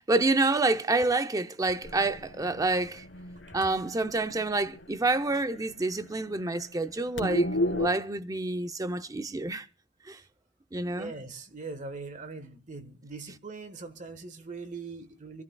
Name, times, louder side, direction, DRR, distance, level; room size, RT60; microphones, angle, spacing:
voice 1, 0.0-3.0 3.5-9.7 10.1-10.2 10.7-11.1, right 2 dB, 20° right, 0.6 m, -28 dB
sound 1, 1.8-5.2 5.5-5.6 5.9-6.1 6.3-7.9, left 1 dB, 75° left, 2.3 m, -33 dB
voice 2, 10.9-15.4, right 3 dB, 45° right, 1.4 m, -41 dB
25.5 x 13.0 x 2.3 m
head